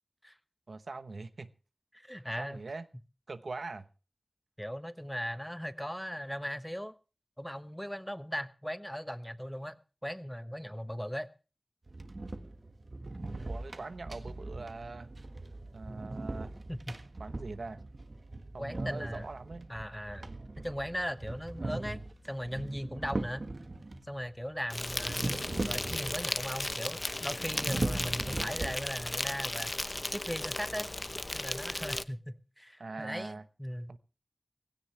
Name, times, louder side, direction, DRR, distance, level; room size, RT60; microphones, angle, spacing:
voice 1, 0.7-1.5 2.4-2.8 3.3-3.9 13.4-15.1 15.7-16.5 17.2-17.8 18.5-19.7 21.6-21.9 32.8-33.4 33.9-34.0, right 3 dB, 90° right, 1.0 m, -42 dB
voice 2, 1.9-2.6 4.6-6.9 7.4-9.7 10.0-11.3 16.7-17.0 18.6-19.3 19.7-22.0 22.3-23.4 24.0-29.7 30.1-30.9 31.3-33.9, equal, 5° left, 1.2 m, -38 dB
sound 1, 11.9-24.0 24.9-26.4 26.7-26.8 27.3-29.3, right 2 dB, 60° right, 1.5 m, -39 dB
sound 2, 21.4-21.5 21.9-29.4, left 3 dB, 85° left, 6.0 m, -62 dB
Insect, 24.7-32.0, left 1 dB, 35° left, 0.8 m, -35 dB
17.0 x 16.5 x 3.4 m
wide cardioid pair, 55°, 0 cm